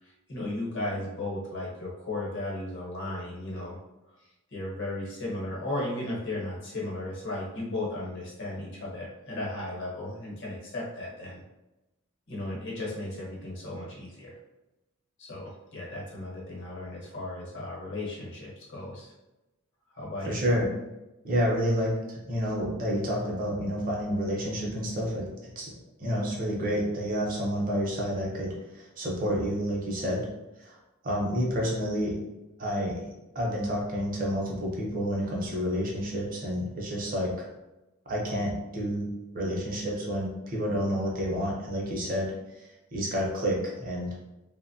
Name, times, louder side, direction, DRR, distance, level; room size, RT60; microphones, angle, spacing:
voice 1, 0.0-3.8 4.1-4.2 4.5-11.4 12.3-14.4 15.2-19.1 19.9-20.6, left 2 dB, 55° left, -4 dB, 0.9 m, -35 dB
voice 2, 20.3-20.7 21.2-25.7 26.0-30.3 30.6-30.8 31.0-32.2 32.6-33.1 33.3-37.5 38.1-44.3, equal, 40° right, -3 dB, 0.7 m, -29 dB
3.0 x 2.0 x 2.6 m, 1.0 s
head